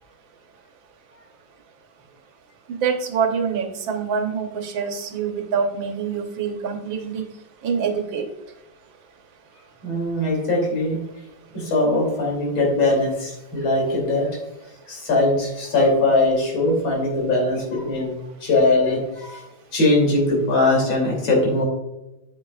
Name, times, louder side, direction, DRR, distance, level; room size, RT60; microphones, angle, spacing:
voice 1, 2.7-7.3 7.6-8.3, right 6 dB, 80° right, 5 dB, 1.7 m, -25 dB
voice 2, 9.8-11.0 11.5-14.3 14.9-19.4 19.7-21.6, left 2 dB, 85° left, -2 dB, 3.6 m, -21 dB
8.6 x 7.5 x 2.3 m, 0.94 s
omnidirectional pair, 2.1 m